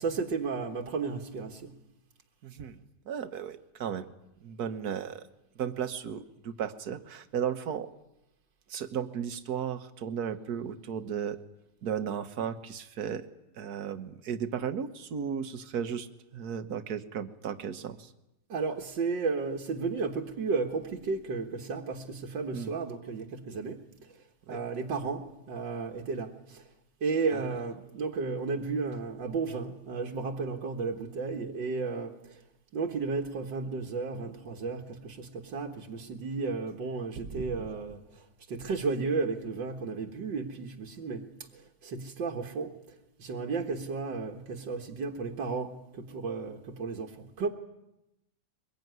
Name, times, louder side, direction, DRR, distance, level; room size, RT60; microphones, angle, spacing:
voice 1, 0.0-1.7 18.5-24.2 24.5-26.7 27.0-32.4 32.7-47.5, right 4 dB, 85° right, 2.3 m, -33 dB
voice 2, 2.4-2.8 3.0-4.1 4.4-5.3 5.5-7.9 8.7-11.4 11.8-13.3 13.5-18.1 22.5-22.7 24.5-24.6 27.3-27.5 37.4-37.5, right 8 dB, 60° right, 1.7 m, -35 dB
23.5 x 21.5 x 9.4 m
omnidirectional pair, 1.9 m